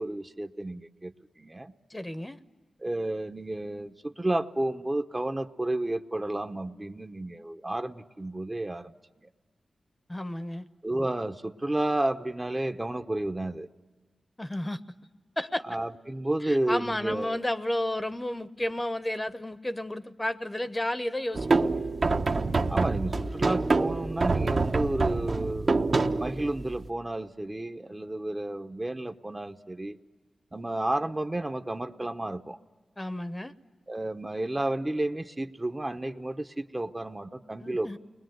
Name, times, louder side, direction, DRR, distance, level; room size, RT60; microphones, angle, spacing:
voice 1, 0.0-1.7 2.8-9.3 10.8-13.7 15.7-17.5 22.7-25.8 26.2-30.0 30.5-32.6 33.9-38.0, right 1 dB, 20° right, 7 dB, 0.8 m, -31 dB
voice 2, 1.9-2.4 10.1-10.6 14.4-14.8 15.4-15.6 16.4-21.5 33.0-33.5 37.6-38.0, left 1 dB, 20° left, 11 dB, 0.8 m, -32 dB
sound 1, 21.3-26.9, right 3 dB, 55° right, 1.0 m, -26 dB
29.5 x 21.5 x 7.8 m, 1.4 s
wide cardioid pair, 75°, 0 cm